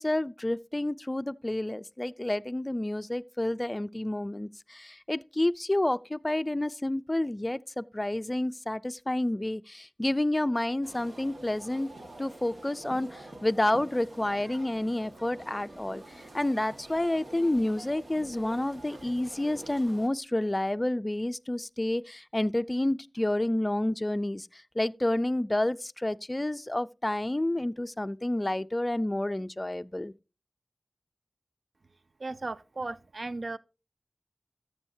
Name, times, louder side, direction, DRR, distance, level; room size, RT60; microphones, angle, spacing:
voice 1, 0.0-11.9 12.2-16.0 16.3-24.5 24.8-30.1, left 1 dB, 25° left, 0.4 m, -29 dB
sound 1, 10.8-20.1, right 1 dB, 85° right, 1.6 m, -47 dB
voice 2, 32.2-33.6, right 2 dB, 70° right, 0.4 m, -36 dB
13.5 x 7.2 x 2.7 m
wide cardioid pair, 55°, 0 cm